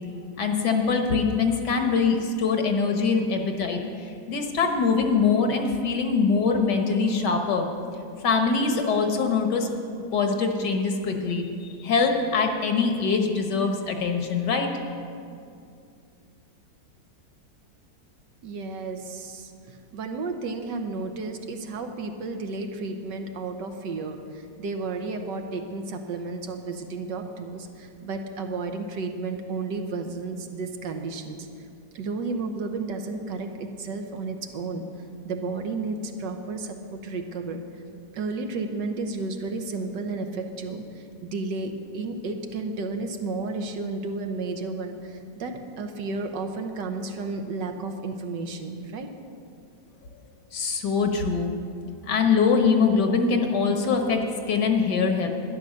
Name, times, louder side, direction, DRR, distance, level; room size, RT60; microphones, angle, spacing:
voice 1, 0.4-7.7 8.2-9.7 10.1-14.7 50.5-51.5 52.0-54.2 54.5-55.3, left 5 dB, 65° left, 4 dB, 1.7 m, -23 dB
voice 2, 18.4-31.5 31.9-34.9 35.2-37.6 38.1-49.1, right 3 dB, 75° right, 5 dB, 1.6 m, -32 dB
12.0 x 10.5 x 6.5 m, 2.4 s
omnidirectional pair, 2.0 m